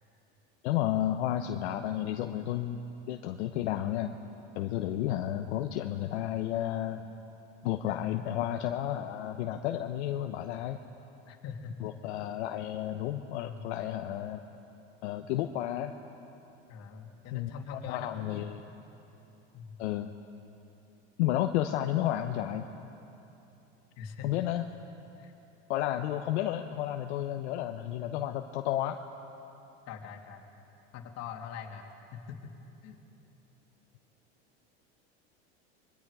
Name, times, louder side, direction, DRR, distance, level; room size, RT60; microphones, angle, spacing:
voice 1, 0.6-2.8 3.1-4.1 4.6-7.0 7.6-10.8 11.8-14.4 15.0-15.9 17.3-17.5 17.9-18.6 19.8-20.1 21.2-22.7 24.2-24.6 25.7-29.0, left 12 dB, 80° left, 5 dB, 1.0 m, -32 dB
voice 2, 7.9-8.2 11.3-11.8 13.4-13.7 16.7-18.5 19.5-19.8 24.0-24.3 25.2-25.3 29.9-30.4 30.9-32.5 32.8-33.0, left 6 dB, 50° left, 2 dB, 2.6 m, -43 dB
26.0 x 22.0 x 4.9 m, 2.9 s
supercardioid pair, 110°, 34 cm